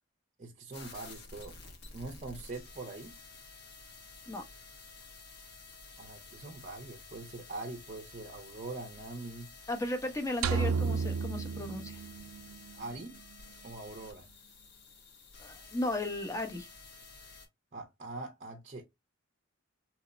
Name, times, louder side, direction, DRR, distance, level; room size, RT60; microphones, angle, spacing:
voice 1, 0.4-1.5 1.9-3.2 6.0-9.5 12.8-13.1 13.6-14.3 17.7-18.8, right 2 dB, 35° right, 0.5 m, -43 dB
sound 1, 0.7-17.5, left 3 dB, 50° left, 0.9 m, -52 dB
voice 2, 9.7-12.0 15.4-16.7, left 1 dB, 15° left, 0.6 m, -35 dB
sound 2, 10.4-12.7, right 5 dB, 85° right, 0.3 m, -32 dB
2.9 x 2.1 x 3.9 m
head